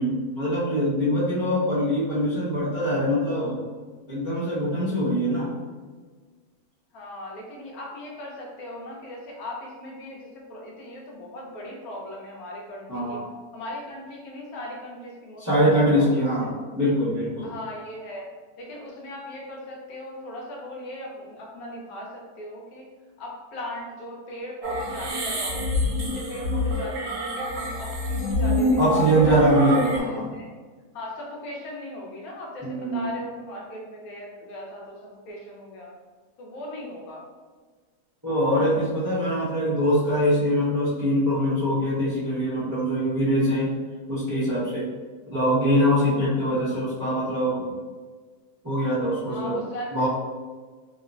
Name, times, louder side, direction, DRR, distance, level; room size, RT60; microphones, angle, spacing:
voice 1, 0.0-3.6 4.1-5.5 12.9-13.2 15.4-17.5 28.8-30.3 32.6-33.1 38.2-43.7 44.1-44.9 45.3-47.6 48.6-49.6 49.9-50.1, equal, 30° right, -10 dB, 0.3 m, -23 dB
voice 2, 6.9-13.2 13.5-16.5 17.4-18.3 18.6-22.9 23.2-25.6 25.9-29.1 29.9-30.5 30.9-35.9 36.4-37.2 46.4-46.7 49.3-50.1, left 1 dB, 75° left, -2 dB, 1.1 m, -38 dB
sound 1, 24.6-30.0, left 1 dB, 75° right, 1.0 m, -26 dB
2.8 x 2.0 x 2.5 m, 1.4 s
omnidirectional pair, 1.6 m